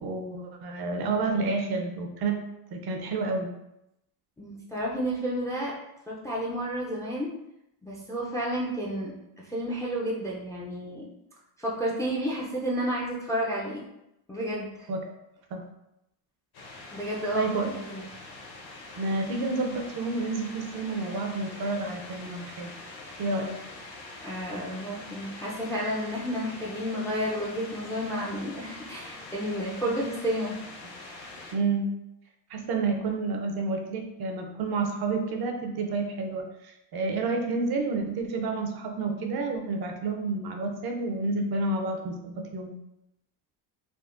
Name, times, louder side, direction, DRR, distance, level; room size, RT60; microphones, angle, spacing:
voice 1, 0.0-2.4 2.7-3.5 14.9-15.0 15.5-15.7 17.3-17.7 19.0-22.7 23.2-23.6 29.8-29.9 31.5-31.9 32.5-42.8, right 3 dB, 50° right, 4 dB, 0.6 m, -30 dB
voice 2, 4.4-5.7 6.1-7.3 7.8-9.1 9.4-11.0 11.6-13.8 14.3-14.9 16.9-18.0 24.2-30.6, equal, 5° left, -4 dB, 0.4 m, -31 dB
sound 1, 16.5-31.5, left 2 dB, 50° left, 0.9 m, -44 dB
3.6 x 2.1 x 2.4 m, 0.85 s
supercardioid pair, 90°, 48 cm